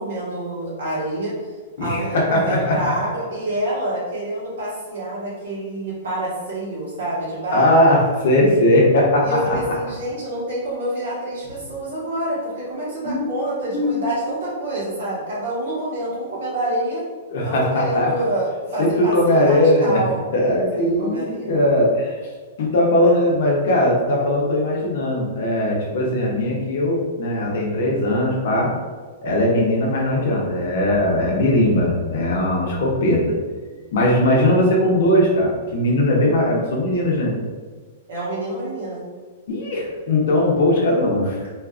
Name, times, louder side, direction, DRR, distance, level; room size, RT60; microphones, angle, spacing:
voice 1, 0.0-1.3 1.8-8.0 9.2-17.0 17.4-20.2 20.7-21.5 23.0-23.2 38.1-39.0, right 1 dB, 75° right, -6 dB, 1.1 m, -27 dB
voice 2, 1.8-2.9 7.5-9.3 13.0-13.3 13.7-14.0 17.3-18.1 18.8-20.0 20.3-22.1 22.6-28.7 29.2-33.2 33.9-37.3 39.5-41.4, left 1 dB, 55° left, -3 dB, 0.6 m, -19 dB
2.5 x 2.3 x 2.4 m, 1.4 s
supercardioid pair, 175°, 0 cm